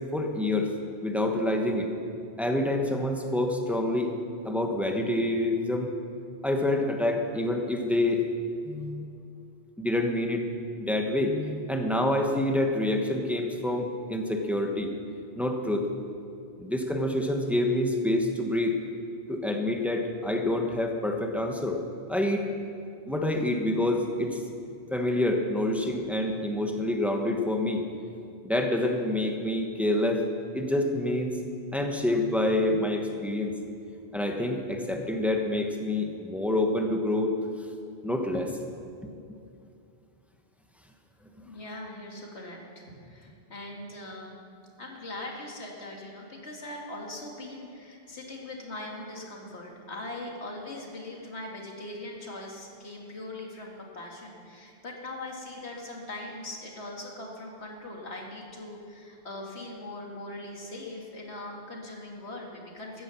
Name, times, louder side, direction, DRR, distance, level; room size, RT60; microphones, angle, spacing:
voice 1, 0.1-0.7 1.0-1.9 2.4-4.2 4.4-5.9 6.4-8.2 8.6-9.0 9.8-10.5 10.8-14.9 15.3-15.9 16.6-18.8 19.3-21.8 22.1-22.5 23.1-24.4 24.9-27.8 28.4-30.2 30.5-31.4 31.7-33.5 34.1-37.4 38.0-38.6 39.0-39.1 41.4-41.5, left 1 dB, ahead, 3 dB, 1.1 m, -27 dB
voice 2, 41.5-44.4 44.8-63.0, left 2 dB, 85° left, -1 dB, 2.3 m, -41 dB
15.0 x 10.0 x 7.1 m, 2.5 s
omnidirectional pair, 1.1 m